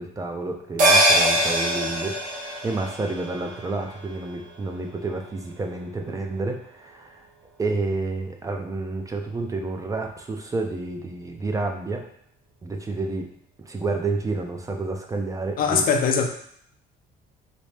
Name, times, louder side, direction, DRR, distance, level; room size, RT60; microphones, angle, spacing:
voice 1, 0.0-7.2 7.6-12.0 12.6-13.2 13.6-15.9, right 3 dB, 20° right, 3 dB, 0.5 m, -30 dB
sound 1, 0.8-5.5 5.8-5.9, right 1 dB, 50° right, 1.0 m, -24 dB
voice 2, 15.6-16.3, left 6 dB, 60° left, 4 dB, 0.5 m, -21 dB
4.1 x 2.1 x 3.2 m, 0.66 s
cardioid pair, 110°, 17 cm